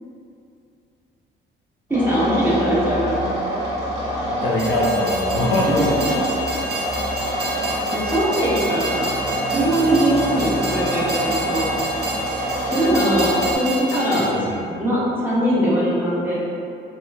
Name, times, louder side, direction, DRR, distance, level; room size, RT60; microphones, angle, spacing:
voice 1, 1.9-3.3 5.9-6.3 7.9-9.1 9.5-11.7 12.7-14.3 14.8-16.4, right 1 dB, 10° right, -9 dB, 1.0 m, -21 dB
sound 1, 1.9-13.6, right 1 dB, 30° right, 1.3 m, -26 dB
voice 2, 4.3-5.9 14.1-14.6, left 1 dB, 80° left, -3 dB, 0.6 m, -22 dB
Train, 4.5-14.3, right 1 dB, 55° right, 0.7 m, -30 dB
3.0 x 2.1 x 3.3 m, 2.5 s
cardioid pair, 90°, 20 cm